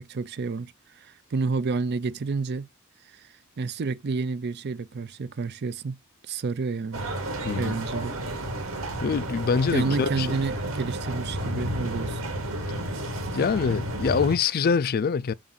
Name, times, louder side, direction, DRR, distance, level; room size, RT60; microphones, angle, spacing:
voice 1, 0.0-2.7 3.1-3.3 3.6-6.0 6.3-7.1 7.6-8.2 9.7-12.2, right 4 dB, 50° right, 0.5 m, -30 dB
sound 1, 6.9-14.4, right 1 dB, 90° right, 2.4 m, -32 dB
voice 2, 9.0-10.4 13.3-15.3, left 5 dB, 45° left, 0.4 m, -24 dB
7.4 x 2.6 x 5.8 m
head